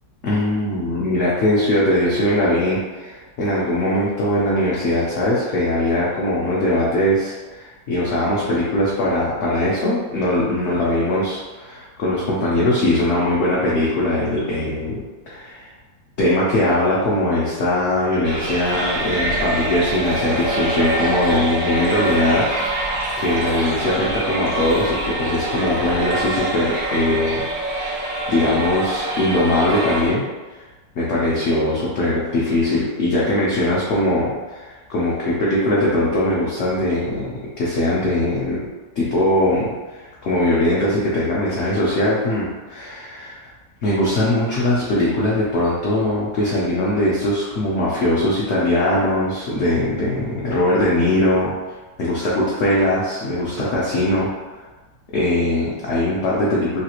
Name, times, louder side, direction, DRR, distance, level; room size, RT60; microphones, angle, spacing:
voice 1, 0.2-15.7 16.2-30.2 30.5-30.6 31.0-37.3 37.6-38.6 39.0-43.4 43.8-51.5 52.0-54.6 55.1-56.8, left 1 dB, 65° left, -6 dB, 0.7 m, -21 dB
sound 1, 18.2-30.1, right 1 dB, 90° right, 1.6 m, -25 dB
3.2 x 2.4 x 2.9 m, 1.2 s
omnidirectional pair, 1.8 m